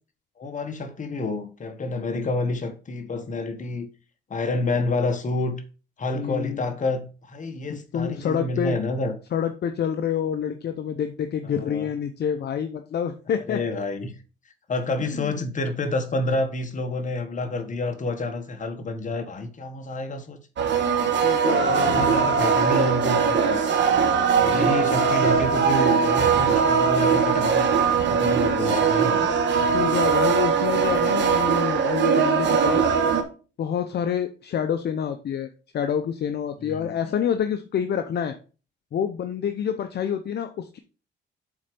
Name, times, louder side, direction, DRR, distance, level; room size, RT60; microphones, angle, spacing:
voice 1, 0.4-3.9 4.3-5.6 6.0-9.2 11.4-11.9 13.5-14.1 14.7-20.4 21.7-23.6 24.4-27.7 28.1-29.4 36.6-37.1, left 2 dB, 40° left, 1.5 m, -29 dB
voice 2, 6.1-6.6 7.7-8.8 9.3-13.6 15.0-15.4 21.2-22.1 24.3-25.1 27.8-27.9 29.7-32.9 33.6-38.3 38.9-40.8, left 8 dB, 55° left, 0.8 m, -27 dB
sound 1, 20.6-33.2, right 6 dB, 65° right, 1.4 m, -21 dB
7.2 x 4.5 x 5.2 m
cardioid pair, 90°, 20 cm